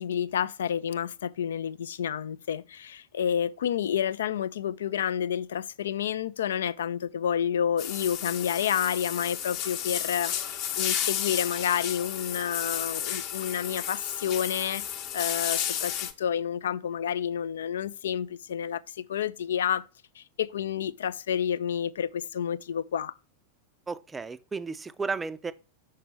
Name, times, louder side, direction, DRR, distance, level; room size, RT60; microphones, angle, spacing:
voice 1, 0.0-19.8 20.2-23.1, left 9 dB, 65° left, 0.3 m, -30 dB
sound 1, 7.8-16.1, left 10 dB, 45° left, 0.8 m, -32 dB
voice 2, 23.9-25.5, right 4 dB, 15° right, 0.4 m, -33 dB
5.8 x 5.7 x 3.1 m
figure-of-eight pair, 90°, 0 cm